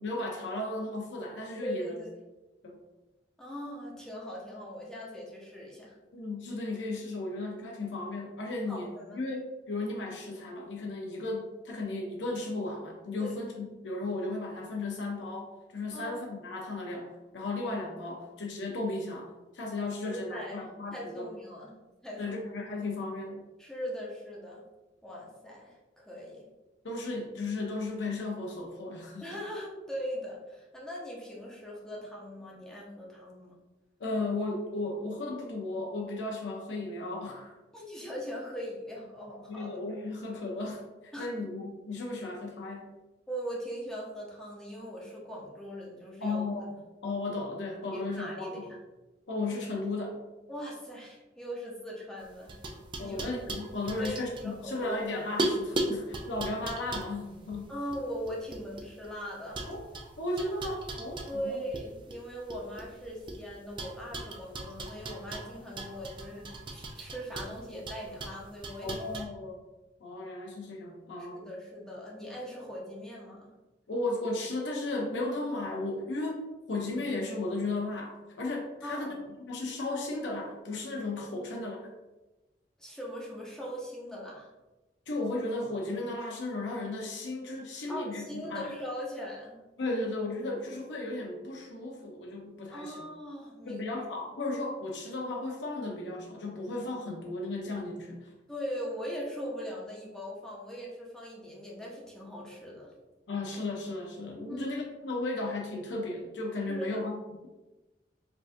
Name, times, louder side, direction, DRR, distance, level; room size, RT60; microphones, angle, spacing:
voice 1, 0.0-2.0 2.6-2.8 6.1-17.1 17.3-21.3 22.2-23.5 26.8-29.3 34.0-37.5 39.5-42.9 46.2-46.6 47.0-48.7 49.3-50.2 53.0-57.7 59.7-59.8 60.2-61.6 68.8-69.6 70.0-71.5 73.9-79.1 79.5-81.9 85.1-88.7 89.8-93.0 93.7-98.3 103.3-107.2, left 2 dB, 75° left, -1 dB, 0.6 m, -35 dB
voice 2, 1.6-2.2 3.4-6.0 8.7-9.2 13.2-13.3 15.9-16.1 20.0-20.7 20.9-21.7 22.0-22.4 23.6-24.6 25.0-26.5 29.2-33.5 37.7-39.7 41.1-41.3 43.3-46.4 47.9-48.8 50.5-52.5 53.0-53.2 54.0-54.9 57.7-59.7 61.3-69.0 71.2-73.5 78.8-79.2 82.8-84.5 87.9-89.6 92.7-93.8 98.5-102.9 104.3-104.7 106.7-107.0, equal, 5° left, -5 dB, 0.7 m, -40 dB
sound 1, 52.2-55.0 55.4-59.1 59.5-61.8 62.1-63.4 63.8-69.2, right 2 dB, 25° right, 0.4 m, -37 dB
4.5 x 2.5 x 2.5 m, 1.1 s
head